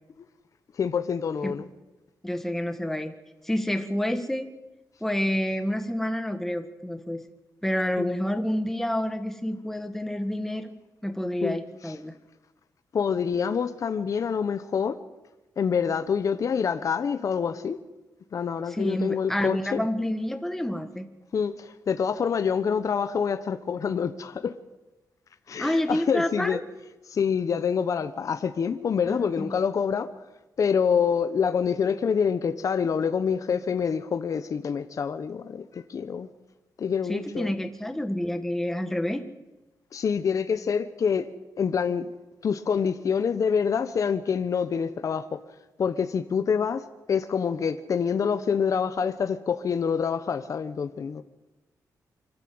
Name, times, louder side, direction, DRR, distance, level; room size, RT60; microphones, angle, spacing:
voice 1, 0.7-1.7 8.0-8.1 11.4-11.6 11.8-11.9 12.9-15.0 15.6-17.8 18.3-19.8 21.3-24.5 25.5-26.6 27.1-30.1 30.6-36.3 36.8-37.5 39.9-41.3 41.6-42.1 42.4-45.4 45.8-51.2, left 6 dB, 50° left, 9 dB, 1.0 m, -26 dB
voice 2, 2.2-3.1 3.4-4.5 5.0-7.2 7.6-10.7 11.0-12.1 18.7-21.1 25.6-26.6 29.1-29.5 37.1-39.2, left 1 dB, 5° left, 7 dB, 1.7 m, -28 dB
25.0 x 13.5 x 7.9 m, 1.1 s
wide cardioid pair, 125°, 7 cm